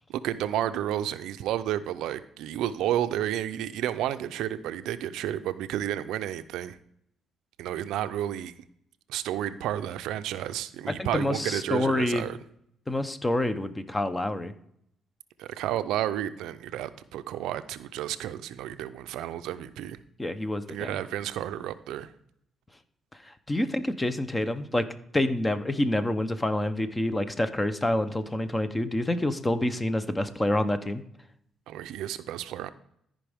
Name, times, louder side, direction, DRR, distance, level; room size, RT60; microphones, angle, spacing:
voice 1, 0.1-6.8 7.6-8.5 9.1-12.4 15.4-20.0 20.7-22.1 31.7-32.7, right 11 dB, 90° right, 12 dB, 0.4 m, -31 dB
voice 2, 11.0-12.2 12.9-14.5 20.2-20.9 23.5-24.9 25.1-31.0, left 1 dB, 15° left, 11 dB, 0.7 m, -27 dB
13.5 x 5.2 x 3.5 m, 0.71 s
cardioid pair, 90°, 0 cm